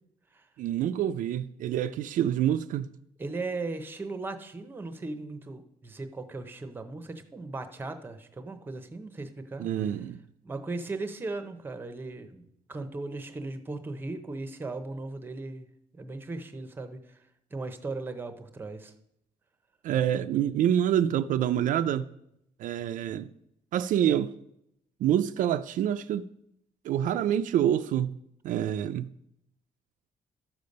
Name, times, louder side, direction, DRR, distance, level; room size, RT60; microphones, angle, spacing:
voice 1, 0.6-2.9 9.6-10.2 19.8-22.1 22.6-23.3 23.7-24.3 25.0-26.2 26.8-28.2 28.4-29.1, right 10 dB, 65° right, 0.4 m, -26 dB
voice 2, 3.2-9.9 10.4-12.4 12.7-15.7 15.9-17.2 17.5-18.9, right 3 dB, 15° right, 0.7 m, -37 dB
12.5 x 6.8 x 5.2 m
cardioid pair, 180°, 15 cm